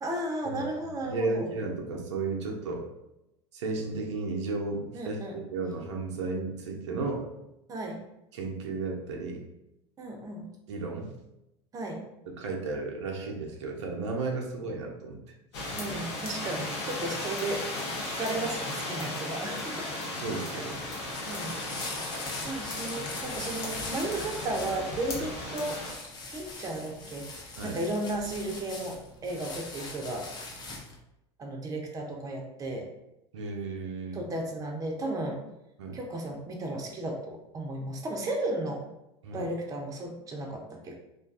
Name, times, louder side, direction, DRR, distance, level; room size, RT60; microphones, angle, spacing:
voice 1, 0.0-1.5 4.9-5.4 7.7-8.0 10.0-10.4 11.7-12.0 15.8-17.7 18.0-19.9 20.8-21.6 22.4-25.8 26.3-30.3 31.4-32.9 34.1-35.4 35.9-38.8 39.3-40.9, right 1 dB, 25° right, 1 dB, 0.5 m, -34 dB
voice 2, 1.0-2.8 3.5-5.2 5.5-7.3 8.3-9.4 10.7-11.1 12.3-15.2 15.6-15.8 20.1-20.8 27.6-27.8 33.3-34.2 35.8-36.0 39.2-39.4, right 3 dB, 80° right, 1 dB, 0.5 m, -34 dB
sound 1, 15.5-25.9, left 2 dB, 70° left, 0.7 m, -36 dB
sound 2, 20.8-31.0, left 3 dB, 30° left, 0.6 m, -41 dB
2.4 x 2.3 x 2.4 m, 0.88 s
hypercardioid pair, 90°, 15 cm